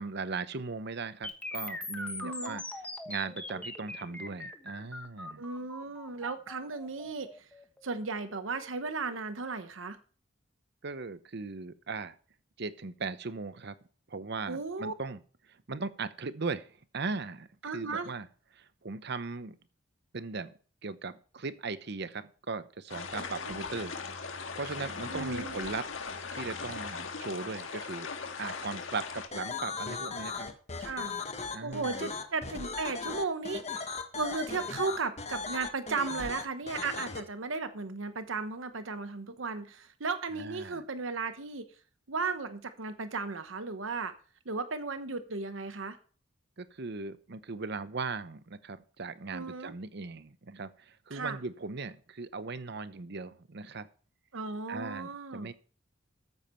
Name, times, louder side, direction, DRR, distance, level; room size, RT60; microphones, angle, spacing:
voice 1, 0.0-2.6 3.1-5.4 10.8-12.2 12.6-13.7 14.1-15.2 15.7-16.7 16.9-17.5 17.7-18.3 18.5-19.6 20.1-20.5 20.8-23.9 24.6-25.8 26.3-28.1 28.4-30.5 31.5-32.1 40.4-40.8 46.6-53.9 54.7-55.5, right 4 dB, 60° right, 13 dB, 0.8 m, -38 dB
sound 1, 1.2-9.2, left 2 dB, 5° left, 1.3 m, -42 dB
voice 2, 2.2-2.6 5.4-7.3 7.8-10.0 14.5-14.9 17.6-18.1 23.2-23.6 25.1-25.5 30.8-31.1 31.6-33.8 34.1-41.7 42.1-44.1 44.4-46.0 49.3-49.7 51.1-51.4 54.3-55.5, right 4 dB, 85° right, 10 dB, 1.0 m, -35 dB
sound 2, 22.9-29.3, left 5 dB, 85° left, 1.6 m, -39 dB
sound 3, 29.3-37.2, left 4 dB, 35° left, 1.4 m, -37 dB
13.5 x 7.2 x 4.5 m, 0.41 s
head